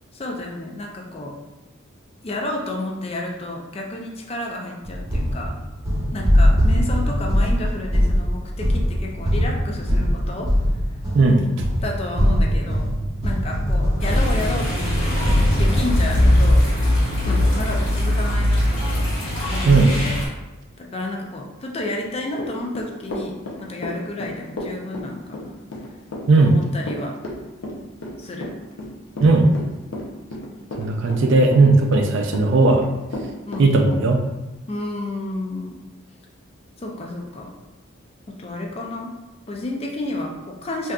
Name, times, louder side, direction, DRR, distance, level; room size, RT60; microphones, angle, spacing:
voice 1, 0.1-1.4 2.2-5.6 6.1-10.5 11.8-12.9 13.2-16.7 17.2-19.1 19.5-20.2 20.8-25.6 26.4-27.2 28.2-28.5 33.5-33.7 34.7-35.8 36.8-37.5 38.3-39.2 39.5-40.9, left 2 dB, 30° left, 1 dB, 0.3 m, -31 dB
sound 1, 4.8-16.6, equal, 15° right, 1.0 m, -21 dB
voice 2, 11.1-11.7 19.7-19.9 26.3-26.6 29.2-29.5 30.8-32.9 33.6-34.2, right 3 dB, 55° right, 3 dB, 0.4 m, -16 dB
sound 2, 14.0-20.3, left 1 dB, 60° left, 1.3 m, -21 dB
Run / Walk footsteps, 22.3-34.1, left 1 dB, 75° left, 0.6 m, -32 dB
3.5 x 2.7 x 2.3 m, 1.0 s
head